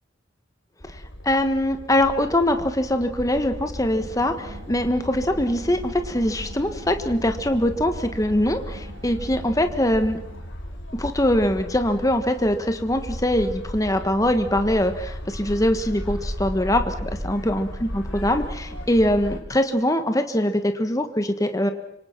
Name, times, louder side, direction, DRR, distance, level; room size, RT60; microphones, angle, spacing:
sound 1, 0.8-19.4, equal, 85° left, 3.9 m, -36 dB
voice 1, 1.2-10.2 11.0-21.7, left 1 dB, 20° left, 7 dB, 1.5 m, -22 dB
sound 2, 3.9-10.5, right 1 dB, 75° right, 2.7 m, -43 dB
26.5 x 25.0 x 6.1 m, 0.79 s
head